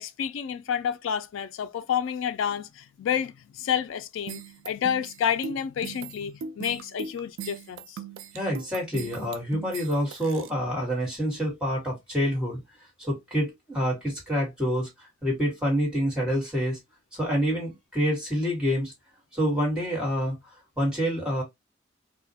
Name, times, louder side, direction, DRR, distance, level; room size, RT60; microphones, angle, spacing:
voice 1, 0.0-8.0, left 8 dB, 70° left, 0.3 m, -29 dB
sound 1, 4.3-10.5, right 6 dB, 70° right, 0.3 m, -39 dB
voice 2, 8.3-12.6 13.0-16.8 17.1-18.9 19.3-20.4 20.8-21.4, equal, 5° right, 1.4 m, -27 dB
2.3 x 2.1 x 2.6 m
head